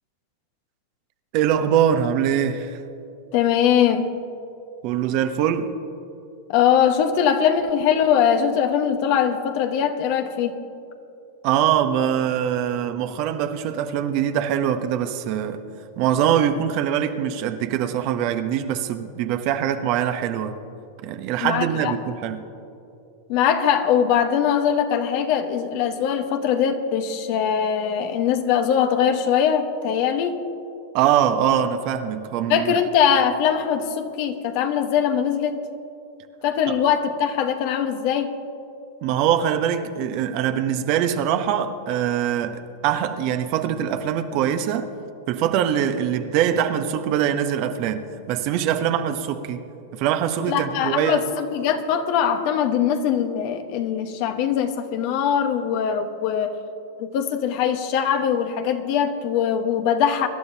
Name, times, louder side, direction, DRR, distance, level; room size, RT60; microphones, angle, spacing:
voice 1, 1.3-2.8 4.8-5.7 11.4-15.6 16.0-20.6 21.0-22.5 30.9-32.8 39.0-44.9 45.3-49.6 49.9-51.2, right 9 dB, 50° right, 1.0 m, -23 dB
voice 2, 3.3-4.2 6.5-10.6 21.4-21.9 23.3-30.4 32.5-35.6 36.4-38.4 50.5-56.6 57.0-60.3, left 8 dB, 55° left, 1.2 m, -21 dB
24.0 x 12.0 x 2.9 m
hypercardioid pair, 105°, 0 cm